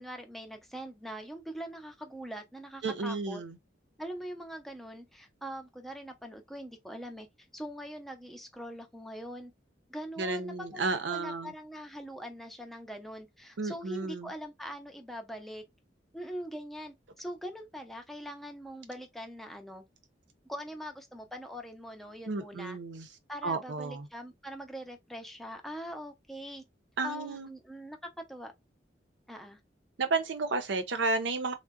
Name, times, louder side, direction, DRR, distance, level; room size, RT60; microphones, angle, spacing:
voice 1, 0.0-3.4 4.0-7.3 7.5-9.5 9.9-15.6 16.1-19.9 20.4-22.8 23.3-26.6 27.0-28.0 28.3-28.5 29.3-29.6, equal, ahead, 0.5 m, -42 dB
voice 2, 2.8-3.6 10.2-11.5 13.6-14.3 22.3-23.1 23.4-24.1 27.0-27.5 30.0-31.5, right 3 dB, 80° right, 0.6 m, -32 dB
3.7 x 2.1 x 2.3 m
head